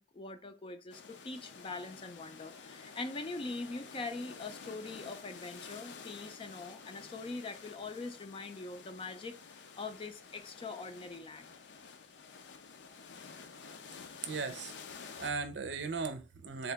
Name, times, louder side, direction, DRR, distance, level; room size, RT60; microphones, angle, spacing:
voice 1, 0.0-11.5 14.4-14.5, left 3 dB, 30° left, 0.4 m, -43 dB
sound 1, 0.9-15.3, left 5 dB, 80° left, 0.5 m, -51 dB
voice 2, 14.2-14.7 15.2-16.7, right 4 dB, 85° right, 0.6 m, -37 dB
3.6 x 2.9 x 3.4 m
head